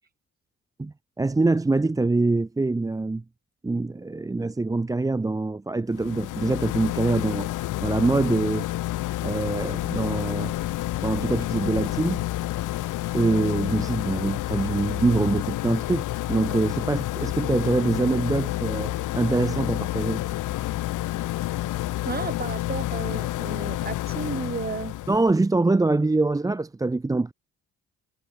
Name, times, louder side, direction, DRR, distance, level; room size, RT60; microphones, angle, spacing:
voice 1, 0.8-3.2 3.6-7.5 7.8-8.7 9.2-10.5 11.0-12.2 13.1-20.2 25.1-27.3, right 3 dB, 10° right, 0.6 m, -24 dB
sound 1, 5.9-25.3, left 16 dB, 85° left, 2.0 m, -29 dB
voice 2, 22.0-25.0, right 5 dB, 30° right, 2.8 m, -33 dB
cardioid pair, 90°, 30 cm